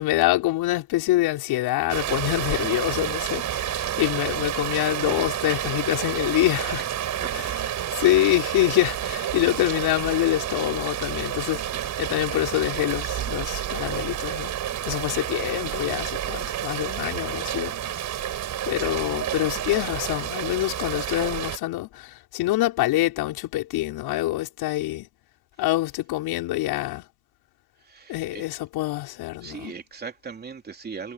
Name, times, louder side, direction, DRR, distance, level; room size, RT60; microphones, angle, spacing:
voice 1, 0.0-6.8 7.3-7.5 7.9-14.5 14.8-18.3 18.7-25.1 25.6-27.1 28.1-29.7, left 16 dB, 50° left, 5.1 m, -25 dB
Rain, 1.9-21.6, right 11 dB, 35° right, 4.8 m, -30 dB
voice 2, 7.2-7.5 27.8-28.4 29.4-31.1, right 5 dB, 20° right, 3.3 m, -39 dB
supercardioid pair, 115°, 47 cm